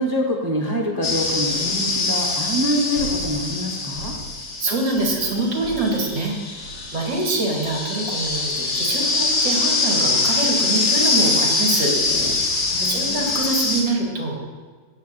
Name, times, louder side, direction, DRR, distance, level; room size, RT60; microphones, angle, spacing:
voice 1, 0.0-4.1 12.7-13.3, equal, 20° right, 0 dB, 0.7 m, -25 dB
sound 1, 1.0-13.8, left 3 dB, 65° left, 2.2 m, -23 dB
voice 2, 4.6-6.6 6.9-12.3 12.8-14.4, right 2 dB, 75° right, -2 dB, 2.6 m, -24 dB
16.0 x 9.2 x 2.6 m, 1.5 s
omnidirectional pair, 2.0 m